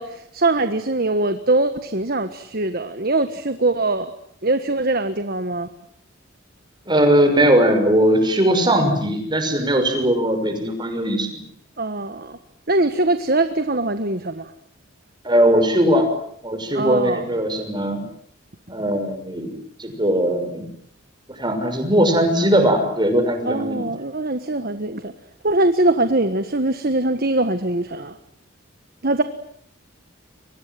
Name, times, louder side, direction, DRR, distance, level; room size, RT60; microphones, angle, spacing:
voice 1, 0.0-4.1 4.4-5.7 11.8-12.4 12.7-14.5 16.7-17.3 23.5-25.1 25.4-28.1 29.0-29.2, right 2 dB, 50° right, 9 dB, 1.5 m, -22 dB
voice 2, 6.9-11.4 15.2-16.1 16.4-18.0 18.7-19.5 19.8-20.7 21.3-23.8, right 1 dB, 25° right, 6 dB, 6.1 m, -19 dB
30.0 x 24.5 x 7.8 m, 0.67 s
head